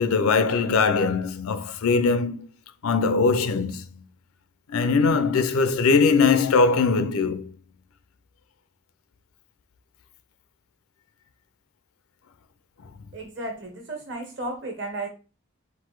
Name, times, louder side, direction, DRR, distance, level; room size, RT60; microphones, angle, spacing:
voice 1, 0.0-2.5 2.8-3.8 4.7-7.5, left 4 dB, 85° left, 0.5 m, -21 dB
voice 2, 13.1-15.1, right 2 dB, 55° right, 1.4 m, -33 dB
4.0 x 2.5 x 4.5 m
head